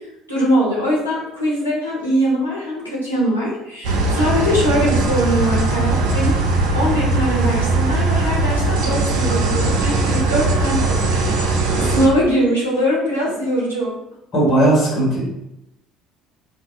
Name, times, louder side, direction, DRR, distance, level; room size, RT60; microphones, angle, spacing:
voice 1, 0.3-6.4 6.7-14.0, equal, 90° left, -7 dB, 0.8 m, -21 dB
sound 1, 3.8-12.1, right 3 dB, 60° right, 0.4 m, -19 dB
voice 2, 14.3-15.2, right 1 dB, 45° left, -5 dB, 1.1 m, -16 dB
2.3 x 2.2 x 3.6 m, 0.87 s
figure-of-eight pair, 55°, 0 cm